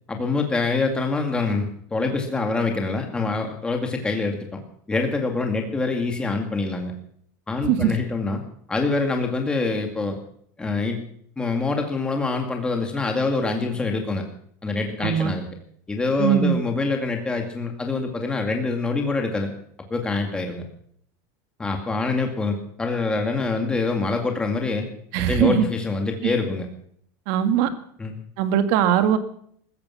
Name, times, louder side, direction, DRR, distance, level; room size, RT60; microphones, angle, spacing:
voice 1, 0.1-4.6 4.9-6.9 7.5-8.4 8.7-10.2 10.6-11.0 11.4-14.2 14.6-15.5 15.9-19.5 19.9-20.6 21.6-24.9 25.3-26.7 28.0-28.2, left 3 dB, 10° left, 3 dB, 2.2 m, -25 dB
voice 2, 15.0-15.3 16.2-16.6 25.1-25.7 26.2-26.3 27.3-27.7 28.4-29.2, right 10 dB, 60° right, 9 dB, 1.9 m, -20 dB
16.0 x 14.0 x 5.8 m, 0.64 s
supercardioid pair, 155°, 9 cm